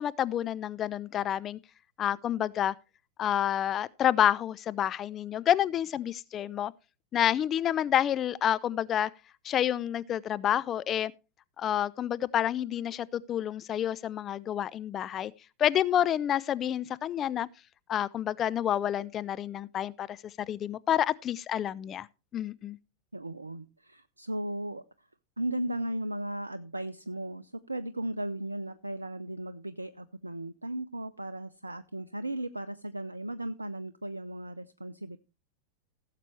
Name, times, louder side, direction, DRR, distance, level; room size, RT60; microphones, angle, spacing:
voice 1, 0.0-1.6 2.0-2.7 3.2-6.7 7.1-9.1 9.4-11.1 11.6-15.3 15.6-17.5 17.9-20.2 20.5-22.1 22.3-22.8, left 10 dB, 30° left, 0.4 m, -29 dB
voice 2, 23.1-25.1 25.4-35.2, right 1 dB, 80° right, 0.4 m, -36 dB
17.0 x 7.6 x 3.2 m
figure-of-eight pair, 90°, 0 cm